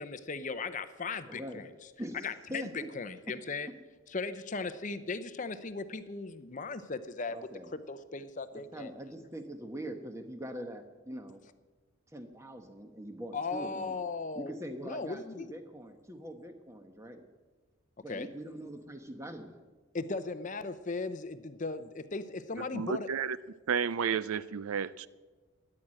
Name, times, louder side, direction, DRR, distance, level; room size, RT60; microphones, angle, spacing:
voice 1, 0.0-1.7 2.2-3.7 4.1-8.9 13.3-14.5 14.8-15.5 18.1-18.3 19.9-23.1, left 4 dB, 35° left, 0.6 m, -37 dB
voice 2, 1.3-1.7 2.0-2.9 3.3-3.4 7.3-7.7 8.7-11.4 12.1-13.9 14.3-17.2 18.0-19.6, right 1 dB, 15° right, 1.1 m, -43 dB
voice 3, 22.7-23.4 23.7-25.1, right 6 dB, 80° right, 0.5 m, -31 dB
13.5 x 9.8 x 7.6 m
head